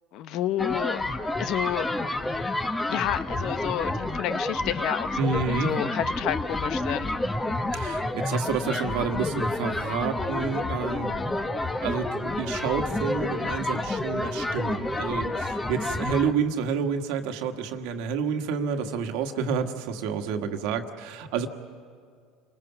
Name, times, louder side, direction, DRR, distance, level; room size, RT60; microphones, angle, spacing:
voice 1, 0.1-1.0 1.4-1.9 2.9-5.1 5.5-7.1, left 12 dB, 60° left, 13 dB, 0.8 m, -30 dB
sound 1, 0.6-16.3, left 2 dB, 15° left, 1.2 m, -29 dB
voice 2, 5.2-5.8 7.7-11.2 11.8-21.5, right 6 dB, 75° right, 6 dB, 1.6 m, -29 dB
29.5 x 19.5 x 5.9 m, 2.2 s
supercardioid pair, 105°, 0 cm